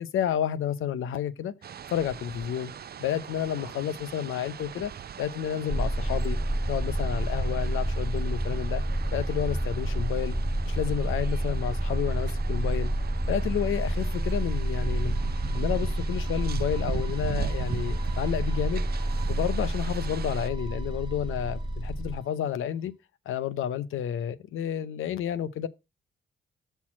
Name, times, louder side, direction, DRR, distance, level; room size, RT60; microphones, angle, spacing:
voice 1, 0.0-1.5 1.9-2.7 3.0-4.9 5.2-6.4 6.7-8.8 9.1-10.4 10.7-12.9 13.3-15.2 15.5-22.9 23.3-25.7, left 9 dB, 75° left, 0.7 m, -31 dB
sound 1, 1.6-20.5, right 8 dB, 50° right, 0.6 m, -40 dB
sound 2, 5.7-22.2, right 1 dB, ahead, 0.5 m, -29 dB
sound 3, 12.8-22.6, right 4 dB, 20° right, 0.9 m, -51 dB
7.0 x 4.5 x 5.9 m
supercardioid pair, 45°, 21 cm